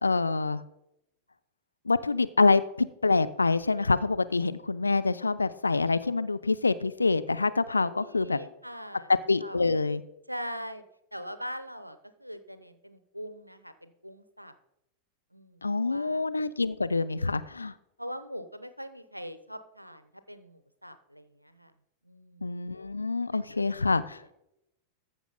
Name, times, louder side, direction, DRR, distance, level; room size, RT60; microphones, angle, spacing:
voice 1, 0.0-0.6 1.9-8.4 9.3-10.0 15.6-17.7 22.4-24.2, left 3 dB, 80° left, 14 dB, 0.4 m, -26 dB
voice 2, 7.8-9.1 9.4-9.7 10.3-10.8 11.1-14.6 15.3-16.2 18.0-21.7 22.0-22.5 23.3-23.6, equal, 90° right, 12 dB, 0.7 m, -42 dB
14.0 x 6.1 x 3.9 m, 0.83 s
figure-of-eight pair, 90°, 0 cm